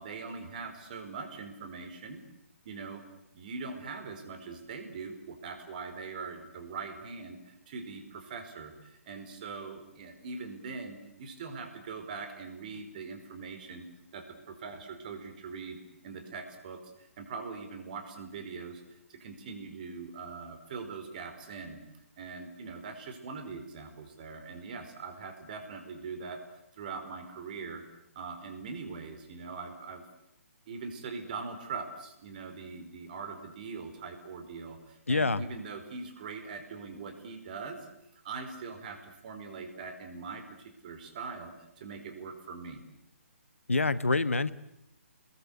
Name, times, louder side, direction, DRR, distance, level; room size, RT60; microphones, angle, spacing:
voice 1, 0.0-2.2 2.6-3.0 3.3-13.9 14.1-15.8 16.0-21.8 22.2-30.0 30.7-37.8 38.2-42.8, right 4 dB, 35° right, 7 dB, 4.7 m, -42 dB
voice 2, 35.1-35.4 43.7-44.5, left 3 dB, 70° left, 16 dB, 1.3 m, -26 dB
29.5 x 22.0 x 8.4 m, 0.80 s
figure-of-eight pair, 135°, 7 cm